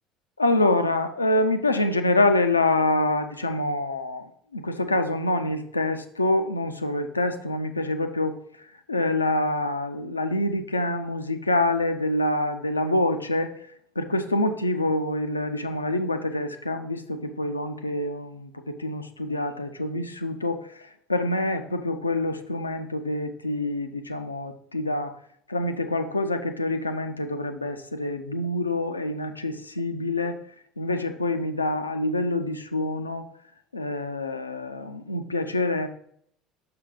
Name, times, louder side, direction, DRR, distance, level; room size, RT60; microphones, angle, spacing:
voice 1, 0.4-4.3 4.5-8.4 8.9-13.5 14.0-25.2 25.5-30.4 30.8-33.3 33.7-35.9, left 2 dB, 85° left, 8 dB, 0.5 m, -26 dB
6.0 x 5.6 x 3.8 m, 0.67 s
figure-of-eight pair, 65°, 0 cm